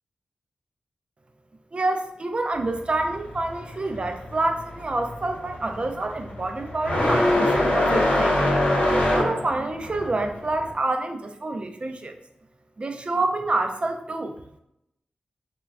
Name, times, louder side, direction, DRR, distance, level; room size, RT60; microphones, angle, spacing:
voice 1, 1.7-8.4 9.1-12.2 12.8-14.4, right 2 dB, 40° right, 6 dB, 0.3 m, -27 dB
sound 1, 2.5-10.7, left 1 dB, 70° left, 0.8 m, -24 dB
3.1 x 2.2 x 2.3 m, 0.80 s
cardioid pair, 65°, 3 cm